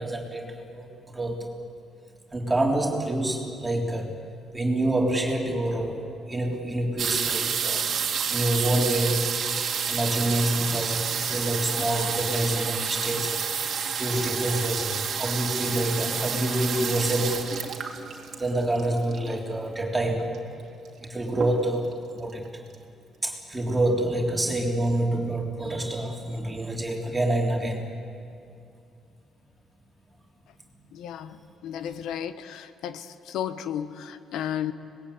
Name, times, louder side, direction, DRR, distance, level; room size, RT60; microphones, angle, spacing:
voice 1, 0.0-1.4 2.3-4.1 4.5-7.9 8.3-9.3 9.9-13.4 14.0-17.5 18.4-20.3 21.0-22.6 23.2-27.9, right 1 dB, 15° right, 0 dB, 3.6 m, -27 dB
sound 1, 7.0-19.5 20.3-20.4 20.6-21.0 21.3-21.9 22.5-22.6 22.7-22.8, right 7 dB, 65° right, 2.5 m, -29 dB
voice 2, 30.9-31.4 31.6-34.7, left 10 dB, 85° left, 12 dB, 1.1 m, -33 dB
25.5 x 20.5 x 8.5 m, 2.5 s
cardioid pair, 90°, 0 cm